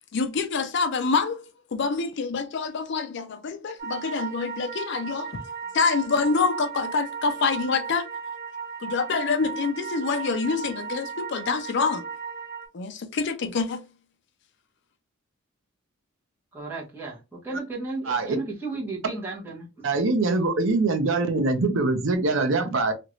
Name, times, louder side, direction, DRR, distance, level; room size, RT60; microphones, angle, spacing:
voice 1, 0.1-1.4 1.7-5.4 5.7-8.1 8.8-12.0 12.7-13.8, left 4 dB, 55° left, 0.4 m, -26 dB
sound 1, 3.8-12.7, right 6 dB, 45° right, 1.3 m, -36 dB
voice 2, 16.5-19.8, right 3 dB, 10° right, 1.2 m, -34 dB
voice 3, 18.1-18.4 19.8-22.9, right 3 dB, 65° right, 0.6 m, -23 dB
2.9 x 2.5 x 3.0 m
head